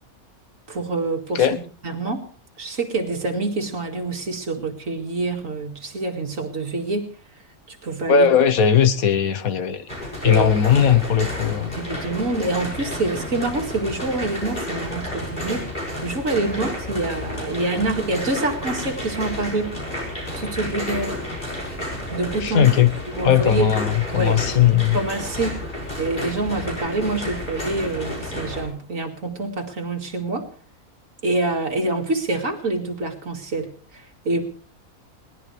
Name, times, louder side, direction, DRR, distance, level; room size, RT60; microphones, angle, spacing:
voice 1, 0.7-2.3 2.6-7.1 7.7-8.3 10.2-10.5 11.7-19.8 20.4-21.2 21.6-21.8 22.1-22.7 23.2-23.7 24.1-24.4 24.9-25.7 26.0-30.5 31.2-34.4, right 2 dB, 60° right, 2.5 m, -26 dB
voice 2, 8.1-9.9 10.2-11.7 22.4-22.9 23.2-25.0, left 8 dB, 70° left, 1.4 m, -18 dB
sound 1, 9.9-28.6, left 1 dB, 30° left, 6.6 m, -31 dB
21.0 x 18.5 x 3.3 m
omnidirectional pair, 1.5 m